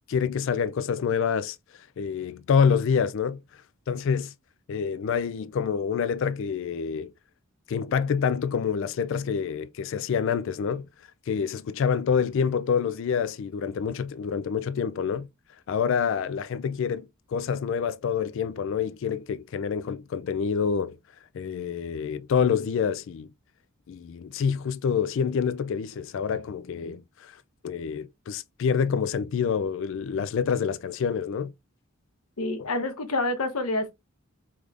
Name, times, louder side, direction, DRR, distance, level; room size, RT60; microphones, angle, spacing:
voice 1, 0.1-1.6 2.0-3.4 3.9-4.3 4.7-7.1 7.7-10.9 11.3-15.3 15.7-21.0 21.3-23.3 23.9-27.4 27.6-31.5, left 6 dB, 60° left, 0.3 m, -27 dB
voice 2, 32.4-33.9, left 2 dB, 85° left, 1.1 m, -27 dB
4.8 x 3.5 x 2.5 m
head